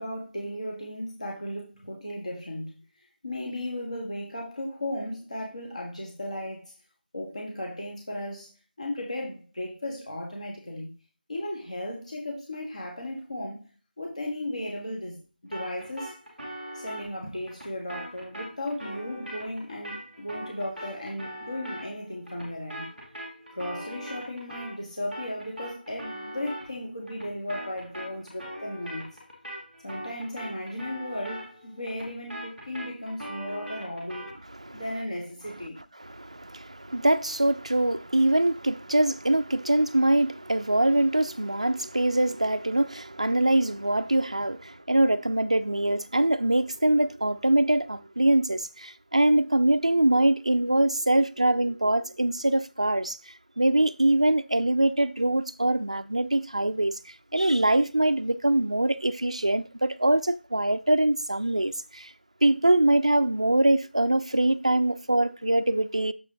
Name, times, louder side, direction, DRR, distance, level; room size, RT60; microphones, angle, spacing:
voice 1, 0.0-2.8 3.2-6.7 7.1-8.5 8.8-10.9 11.3-13.7 14.0-16.1 16.7-22.9 23.5-29.1 29.8-34.3 34.7-35.8, left 1 dB, 40° left, 1.7 m, -35 dB
sound 1, 15.5-24.8 25.1-34.4, equal, 5° left, 1.4 m, -41 dB
voice 2, 36.0-53.2 53.6-56.9 57.3-62.1 62.4-66.1, right 1 dB, 35° right, 0.3 m, -23 dB
7.0 x 4.4 x 3.8 m
figure-of-eight pair, 180°, 6 cm